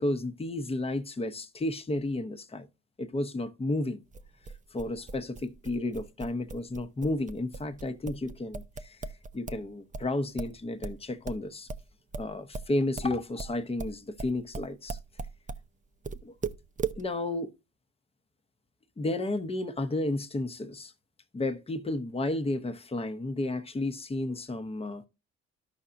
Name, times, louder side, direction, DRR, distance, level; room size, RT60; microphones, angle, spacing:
voice 1, 0.0-2.7 3.0-4.0 4.7-9.0 9.3-11.7 12.2-15.0 16.2-16.3 17.0-17.5 19.0-20.9 21.3-25.0, left 2 dB, 20° left, 0.8 m, -32 dB
sound 1, 4.1-9.7 9.9-15.7 16.0-17.0, right 5 dB, 25° right, 0.6 m, -38 dB
13.0 x 5.6 x 2.5 m
cardioid pair, 90°, 30 cm